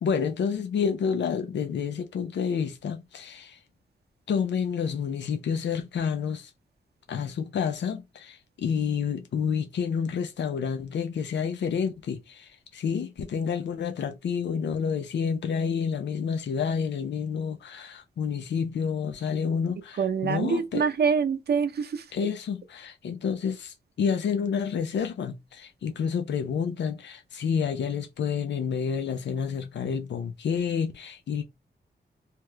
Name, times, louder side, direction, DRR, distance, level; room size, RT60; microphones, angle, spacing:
voice 1, 0.0-3.6 4.3-6.5 7.1-20.8 22.1-31.4, left 6 dB, 90° left, 0.5 m, -29 dB
voice 2, 20.0-22.0, right 6 dB, 65° right, 0.6 m, -25 dB
2.8 x 2.4 x 3.2 m
wide cardioid pair, 125°, 18 cm